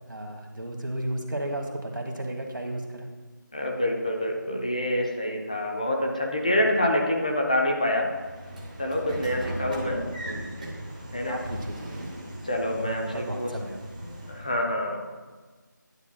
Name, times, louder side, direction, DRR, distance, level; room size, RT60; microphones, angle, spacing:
voice 1, 0.1-3.1 9.1-9.5 10.2-10.6 11.2-12.1 12.7-13.8, right 1 dB, 80° right, 2 dB, 1.3 m, -34 dB
voice 2, 3.5-8.1 8.8-10.0 11.1-11.4 12.4-13.5 14.1-15.0, left 1 dB, 20° left, 0 dB, 0.5 m, -26 dB
Train / Sliding door, 8.0-14.6, equal, 25° right, 0.9 m, -38 dB
9.7 x 7.1 x 2.2 m, 1.4 s
figure-of-eight pair, 170°, 11 cm